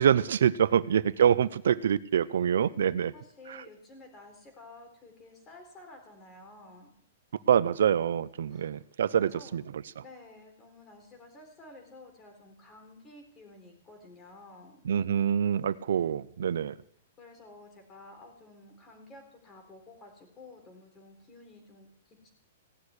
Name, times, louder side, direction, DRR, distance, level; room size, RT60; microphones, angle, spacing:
voice 1, 0.0-3.1 7.5-9.6 14.9-16.7, right 8 dB, 75° right, 17 dB, 0.7 m, -25 dB
voice 2, 3.1-7.0 8.5-8.7 9.1-9.6 10.0-14.8 17.2-22.3, left 2 dB, 15° left, 3 dB, 4.0 m, -52 dB
17.0 x 6.6 x 9.7 m, 0.63 s
hypercardioid pair, 165°, 0 cm